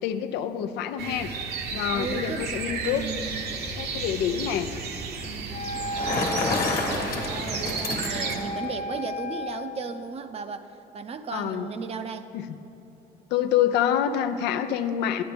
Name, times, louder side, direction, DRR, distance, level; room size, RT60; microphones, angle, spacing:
voice 1, 0.0-1.3 1.7-3.1 3.8-4.7 11.3-11.7 12.3-12.6 13.3-15.2, left 10 dB, 90° left, 8 dB, 0.5 m, -26 dB
sound 1, 1.0-8.4, right 4 dB, 70° right, 0.9 m, -33 dB
voice 2, 1.9-2.5 2.8-3.6 3.9-4.3 5.2-12.3, right 5 dB, 35° right, 9 dB, 0.5 m, -36 dB
Wind instrument woodwind instrument, 5.5-10.0, equal, 35° left, 0.8 m, -35 dB
Bicycle, 5.7-8.6, left 3 dB, 60° left, 1.2 m, -29 dB
11.0 x 9.3 x 3.4 m, 2.9 s
cardioid pair, 110°, 17 cm